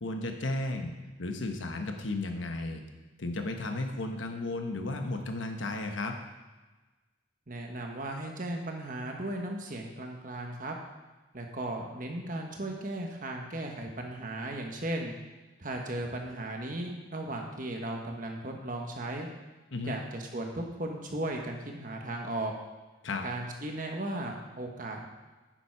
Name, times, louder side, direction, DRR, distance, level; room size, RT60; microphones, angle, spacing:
voice 1, 0.0-2.8 3.2-6.2 19.7-20.0 23.0-23.3, left 2 dB, 75° left, 4 dB, 1.1 m, -34 dB
voice 2, 7.5-10.8 11.3-15.1 15.6-19.3 19.8-22.5 23.2-25.1, right 1 dB, 45° right, 2 dB, 1.3 m, -36 dB
10.5 x 7.2 x 4.7 m, 1.2 s
head